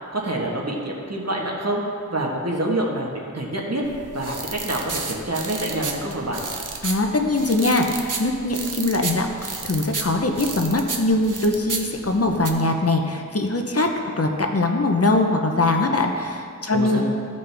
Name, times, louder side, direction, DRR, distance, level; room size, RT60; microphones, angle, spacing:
voice 1, 0.1-1.8 2.1-3.8 4.1-6.4 16.7-17.0, right 1 dB, 55° right, -1 dB, 1.4 m, -26 dB
sound 1, 3.8-12.5, right 4 dB, 75° right, 0.8 m, -33 dB
voice 2, 6.8-13.9 14.2-17.0, left 2 dB, 50° left, 3 dB, 0.8 m, -22 dB
15.0 x 5.3 x 3.4 m, 2.4 s
wide cardioid pair, 45°, 32 cm